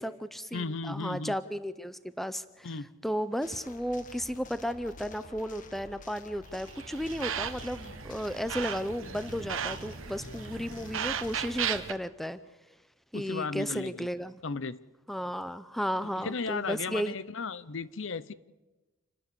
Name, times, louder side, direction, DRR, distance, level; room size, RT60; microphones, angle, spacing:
voice 1, 0.0-2.7 3.0-12.4 13.1-14.4 15.1-17.1, equal, ahead, 0.6 m, -34 dB
voice 2, 0.5-1.4 2.6-2.9 13.1-14.1 14.4-14.8 16.0-18.3, left 4 dB, 65° left, 0.7 m, -35 dB
sound 1, 3.4-11.8, left 2 dB, 40° left, 1.4 m, -49 dB
sound 2, 6.6-11.9, right 8 dB, 75° right, 1.1 m, -36 dB
28.0 x 12.0 x 8.2 m
head